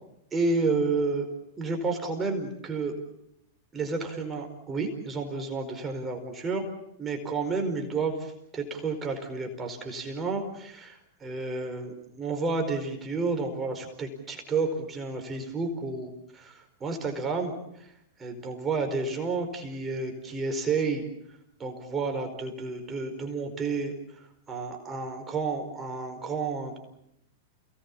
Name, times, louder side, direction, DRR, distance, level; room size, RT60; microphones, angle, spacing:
voice 1, 0.3-1.3 1.6-2.9 3.7-6.6 7.0-17.9 18.2-21.0 21.6-23.9 24.5-26.8, right 4 dB, 20° right, 4 dB, 4.8 m, -31 dB
29.5 x 19.0 x 7.3 m, 0.78 s
hypercardioid pair, 105°, 0 cm